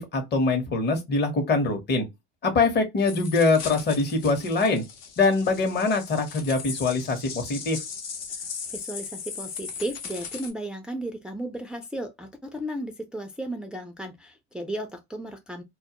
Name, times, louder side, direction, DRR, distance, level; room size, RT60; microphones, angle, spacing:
voice 1, 0.0-2.1 2.4-4.8 5.2-7.8, left 3 dB, 30° left, 0.8 m, -23 dB
sound 1, 3.1-10.5, left 6 dB, 70° left, 0.9 m, -38 dB
voice 2, 8.7-15.6, right 1 dB, 5° right, 0.3 m, -34 dB
2.2 x 2.1 x 2.7 m
supercardioid pair, 95°, 33 cm